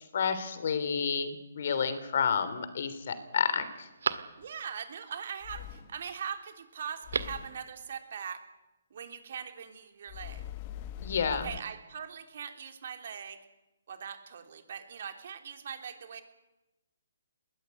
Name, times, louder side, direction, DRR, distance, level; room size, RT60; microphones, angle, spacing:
voice 1, 0.0-3.9 11.0-11.5, left 6 dB, 55° left, 12 dB, 3.3 m, -30 dB
Telephone, 1.7-2.3 2.8-2.9 3.3-4.8 6.9-7.5 7.8-7.9, right 5 dB, 75° right, 1.8 m, -37 dB
sound 1, 4.4-4.5 5.4-6.1 7.0-7.7 10.1-11.6, left 11 dB, 30° left, 0.9 m, -42 dB
voice 2, 4.4-8.4 8.9-10.4 11.3-13.4 13.9-16.2, right 7 dB, 55° right, 6 dB, 3.3 m, -41 dB
21.0 x 17.0 x 9.5 m, 1.0 s
hypercardioid pair, 155°, 0 cm